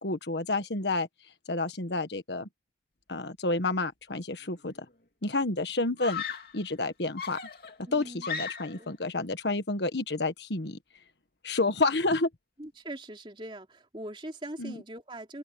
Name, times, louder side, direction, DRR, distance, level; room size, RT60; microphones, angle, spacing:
voice 1, 0.0-1.1 1.5-2.5 3.1-4.7 5.2-6.2 6.5-7.4 7.9-10.8 11.4-12.3 14.6-14.8, left 2 dB, 75° left, 1.5 m, -29 dB
Screaming, 4.4-4.9 6.0-6.6 7.2-8.9, left 6 dB, 55° left, 3.0 m, -37 dB
voice 2, 7.8-8.3 8.7-8.9 12.6-15.4, right 1 dB, 30° right, 3.1 m, -41 dB
open air
head